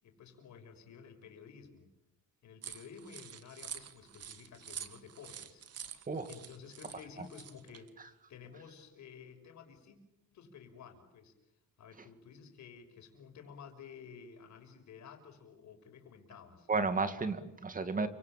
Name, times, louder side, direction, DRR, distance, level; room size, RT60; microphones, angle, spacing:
voice 1, 0.0-1.9 2.4-10.0 10.3-11.3 11.8-16.7, left 6 dB, 60° left, 5 dB, 6.1 m, -53 dB
sound 1, 2.6-7.9, right 9 dB, 50° right, 1.8 m, -47 dB
voice 2, 16.7-18.1, right 4 dB, 25° right, 10 dB, 2.2 m, -33 dB
30.0 x 25.5 x 7.6 m, 0.88 s
cardioid pair, 140°, 32 cm